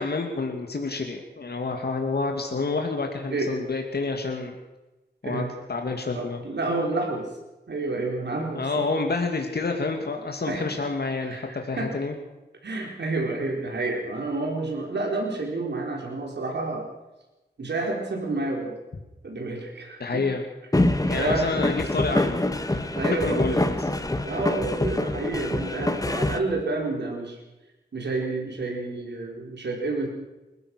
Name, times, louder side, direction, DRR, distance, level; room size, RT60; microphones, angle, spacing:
voice 1, 0.0-4.5 5.2-6.4 8.5-12.1 20.0-20.4 21.1-22.9 23.3-23.9, left 3 dB, 70° left, 3 dB, 2.5 m, -29 dB
voice 2, 6.1-7.3 7.7-8.8 10.5-10.6 11.2-11.9 12.6-16.9 17.6-18.7 19.2-20.2 20.7-21.5 22.9-23.6 24.2-27.4 27.9-30.1, right 2 dB, 85° right, 0 dB, 4.7 m, -29 dB
sound 1, 20.7-26.4, left 1 dB, 20° left, 1.8 m, -25 dB
29.0 x 15.0 x 6.4 m, 1.0 s
wide cardioid pair, 85°, 17 cm